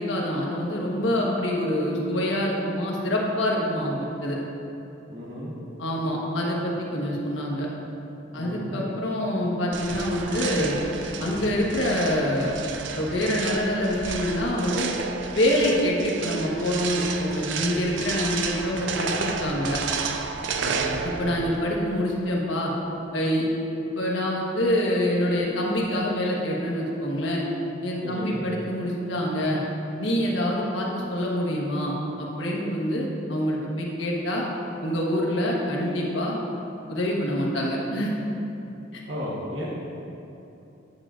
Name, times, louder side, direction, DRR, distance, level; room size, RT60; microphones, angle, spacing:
voice 1, 0.0-4.4 5.8-7.7 8.3-10.8 11.2-12.5 12.9-14.9 15.3-19.8 21.0-22.7 23.1-23.5 24.0-27.4 27.8-29.6 30.0-34.4 34.8-36.4 36.9-38.1 38.9-39.0, left 1 dB, 80° left, -3 dB, 1.2 m, -26 dB
voice 2, 5.1-5.5 8.3-8.8 20.6-20.9 28.0-28.4 39.0-39.7, equal, 90° right, -6 dB, 1.3 m, -34 dB
sound 1, 9.7-21.6, right 5 dB, 70° right, 0.4 m, -31 dB
9.3 x 6.9 x 2.5 m, 2.9 s
head